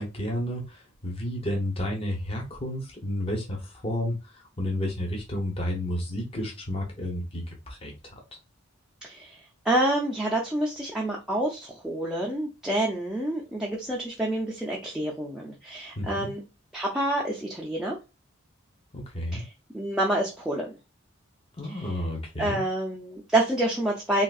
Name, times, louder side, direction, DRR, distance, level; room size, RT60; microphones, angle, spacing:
voice 1, 0.0-8.1 16.0-16.3 18.9-19.4 21.6-22.6, left 1 dB, 30° left, 0 dB, 0.8 m, -31 dB
voice 2, 9.0-9.4 9.6-16.4 16.7-18.0 19.3-19.5 19.7-20.7 21.7-21.9 22.4-24.2, right 1 dB, 5° right, -3 dB, 0.5 m, -28 dB
3.6 x 2.4 x 2.3 m, 0.27 s
head